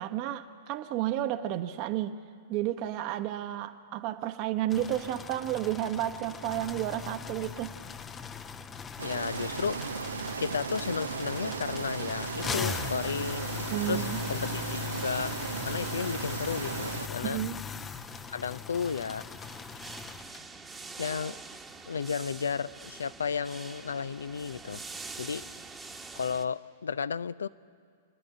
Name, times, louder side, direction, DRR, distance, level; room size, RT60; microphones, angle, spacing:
voice 1, 0.0-2.2 2.5-7.8 13.7-14.2 17.2-17.6, right 13 dB, 40° right, 9 dB, 1.0 m, -32 dB
sound 1, 4.7-20.4, left 6 dB, 20° left, 0.7 m, -39 dB
voice 2, 9.0-9.8 10.4-13.5 13.9-15.3 15.6-17.4 18.3-19.2 21.0-21.4 21.9-24.8 25.2-25.4 26.2-27.5, left 6 dB, 70° left, 17 dB, 0.4 m, -33 dB
sound 2, 9.0-17.1, right 5 dB, 75° right, 0.5 m, -36 dB
sound 3, 13.5-26.4, right 4 dB, 10° right, 1.2 m, -47 dB
28.0 x 10.5 x 9.9 m, 2.2 s
figure-of-eight pair, 105°, 0 cm